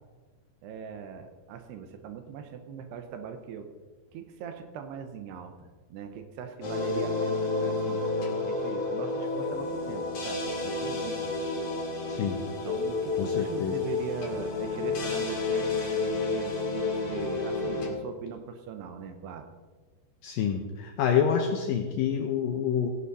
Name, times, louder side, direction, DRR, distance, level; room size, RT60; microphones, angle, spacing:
voice 1, 0.6-3.7 4.1-8.0 8.4-11.3 12.6-19.5, right 6 dB, 80° right, 7 dB, 3.0 m, -40 dB
sound 1, 6.6-17.9, left 3 dB, 45° left, 2.7 m, -30 dB
voice 2, 12.1-12.4 13.2-13.7 20.2-22.9, left 8 dB, 75° left, 3 dB, 2.1 m, -27 dB
16.0 x 11.5 x 4.2 m, 1.3 s
omnidirectional pair, 5.0 m